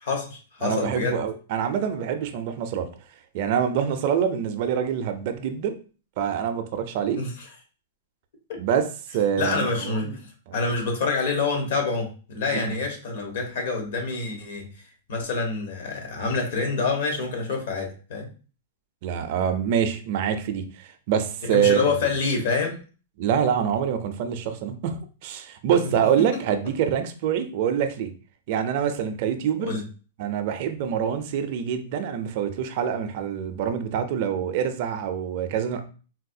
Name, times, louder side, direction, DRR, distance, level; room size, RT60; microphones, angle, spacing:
voice 1, 0.0-1.2 7.1-7.3 9.4-10.1 10.5-14.7 15.1-18.3 21.5-22.8 25.7-25.8 29.6-29.8, left 4 dB, 60° left, 3 dB, 1.0 m, -27 dB
voice 2, 0.6-2.9 3.3-5.8 6.2-7.2 8.6-8.9 9.1-10.2 12.5-12.8 19.0-22.1 23.2-28.1 28.5-29.8 30.2-35.8, right 8 dB, 45° right, 8 dB, 0.4 m, -25 dB
3.9 x 2.2 x 2.6 m, 0.37 s
hypercardioid pair, 160°, 0 cm